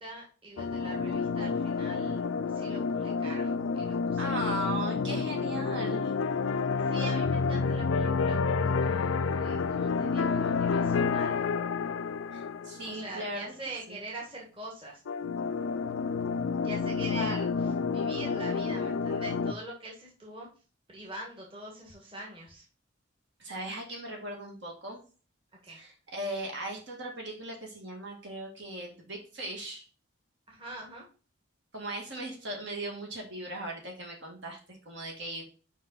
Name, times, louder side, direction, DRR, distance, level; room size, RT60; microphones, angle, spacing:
voice 1, 0.0-2.3 2.5-4.5 6.8-11.4 12.8-15.0 16.6-17.5 17.9-20.5 20.9-22.6 25.6-25.8 30.5-31.1, right 1 dB, 25° right, -2 dB, 1.7 m, -43 dB
sound 1, 0.6-13.1 15.1-19.5, left 5 dB, 75° left, 0.4 m, -29 dB
voice 2, 4.2-6.1 12.3-13.5 13.9-14.0 17.1-17.4 23.4-25.0 25.7-29.8 31.7-35.4, right 1 dB, 55° right, 0 dB, 2.0 m, -38 dB
5.5 x 5.2 x 4.1 m, 0.36 s
head